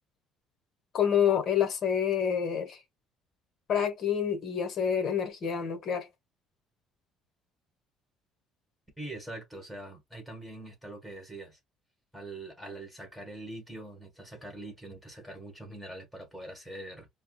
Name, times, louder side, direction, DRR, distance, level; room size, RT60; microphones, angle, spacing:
voice 1, 0.9-2.8 3.7-6.1, left 8 dB, 45° left, 1.2 m, -27 dB
voice 2, 9.0-11.6 12.1-17.1, right 1 dB, 5° left, 1.5 m, -43 dB
4.7 x 2.0 x 2.3 m
cardioid pair, 155°, 0 cm